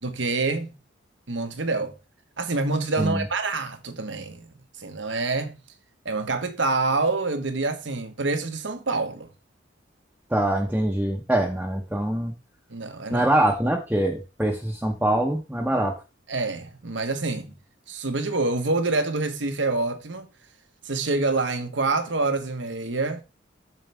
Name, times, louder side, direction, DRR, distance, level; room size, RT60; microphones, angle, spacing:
voice 1, 0.0-0.7 1.3-1.9 2.4-4.5 4.8-5.6 6.0-9.3 12.7-13.3 16.3-17.5 17.9-20.3 20.8-23.2, right 3 dB, 75° right, 1.4 m, -26 dB
voice 2, 10.3-12.3 13.1-16.0, right 1 dB, 10° right, 1.0 m, -24 dB
7.4 x 6.8 x 3.5 m
head